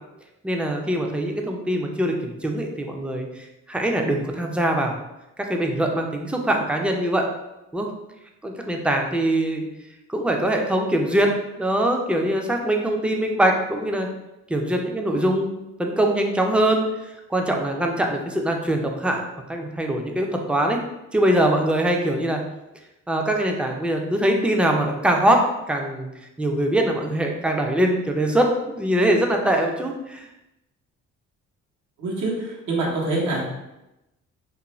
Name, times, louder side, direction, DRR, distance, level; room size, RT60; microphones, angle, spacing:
voice 1, 0.4-4.9 5.4-7.3 7.7-7.9 8.4-9.7 10.1-11.3 11.6-14.1 14.5-16.8 17.3-19.2 19.5-20.8 21.1-22.4 23.1-26.1 26.4-30.3, right 1 dB, 5° right, 2 dB, 0.3 m, -22 dB
voice 2, 32.0-33.4, right 2 dB, 80° right, -4 dB, 0.9 m, -25 dB
2.5 x 2.1 x 3.0 m, 0.93 s
cardioid pair, 90°, 30 cm